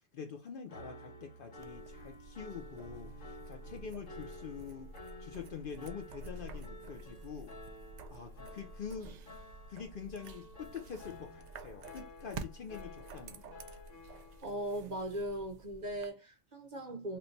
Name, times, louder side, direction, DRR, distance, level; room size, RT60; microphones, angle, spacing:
voice 1, 0.1-4.9 5.2-7.5 8.1-9.2 9.7-13.6, left 6 dB, 55° left, 0.7 m, -45 dB
Piano, 0.7-14.4, left 1 dB, 85° left, 1.4 m, -52 dB
sound 1, 1.6-16.1, right 3 dB, 70° right, 0.4 m, -50 dB
voice 2, 14.4-17.2, right 1 dB, 45° right, 0.8 m, -39 dB
3.1 x 2.1 x 3.9 m
omnidirectional pair, 1.3 m